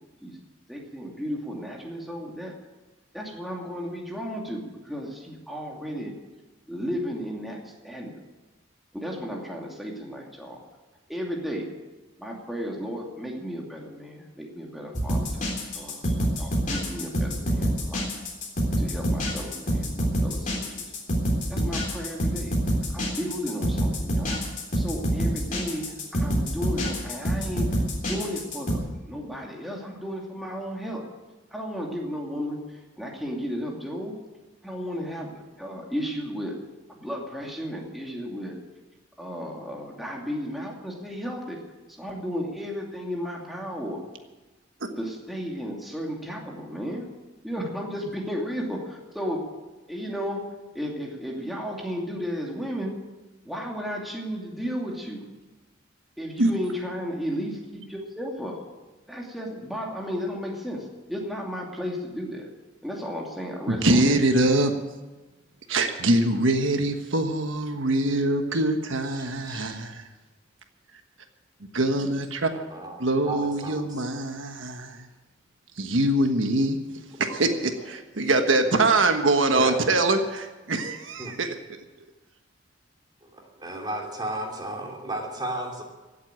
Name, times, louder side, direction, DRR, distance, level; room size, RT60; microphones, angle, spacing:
voice 1, 0.7-2.5 3.1-6.1 6.7-8.1 8.9-10.6 11.1-11.7 12.2-18.1 18.8-20.8 21.5-22.5 22.9-24.4 24.7-27.7 28.0-31.1 31.5-34.2 34.6-36.6 36.9-38.6 39.2-41.6 41.9-44.0 45.0-47.1 47.4-49.5 49.9-50.5 50.7-53.0 53.4-55.3 56.2-58.6 59.1-62.5 62.8-64.2, equal, ahead, -2 dB, 2.5 m, -34 dB
sound 1, 14.9-28.7, equal, 40° left, 3.6 m, -26 dB
voice 2, 63.7-64.7 65.7-70.0 71.7-72.5 73.0-75.0 75.8-76.8 77.2-81.5, right 2 dB, 90° right, 6 dB, 1.3 m, -23 dB
voice 3, 69.0-69.8 72.7-74.0 77.3-77.4 79.5-79.8 81.2-81.4 83.2-85.8, right 1 dB, 20° right, 0 dB, 3.0 m, -34 dB
16.0 x 8.4 x 9.0 m, 1.2 s
head